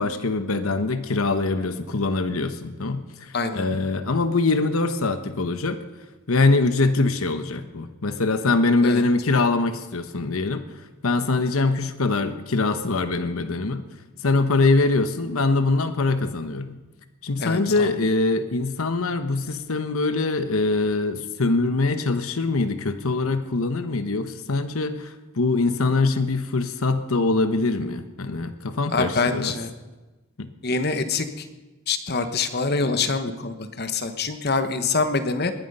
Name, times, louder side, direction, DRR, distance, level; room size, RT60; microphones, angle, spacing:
voice 1, 0.0-5.8 6.3-10.6 11.0-13.9 14.2-16.8 17.2-29.5 30.4-30.5, left 3 dB, 90° left, 9 dB, 1.0 m, -23 dB
voice 2, 3.3-3.7 8.8-9.0 17.4-17.9 28.9-29.7 30.6-31.4 31.9-35.5, left 4 dB, 50° left, 9 dB, 1.2 m, -25 dB
20.0 x 11.5 x 5.5 m, 1.2 s
head